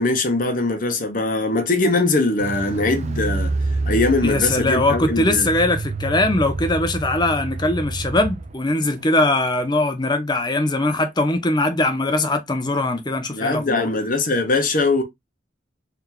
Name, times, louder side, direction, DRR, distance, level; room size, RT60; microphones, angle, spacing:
voice 1, 0.0-3.5 3.9-5.5 13.3-15.0, left 2 dB, 45° left, 0.9 m, -21 dB
Car, 2.4-8.6 8.8-8.9, right 3 dB, 35° right, 0.4 m, -27 dB
voice 2, 4.2-13.9, left 2 dB, 20° left, 0.6 m, -21 dB
3.4 x 2.9 x 3.7 m
head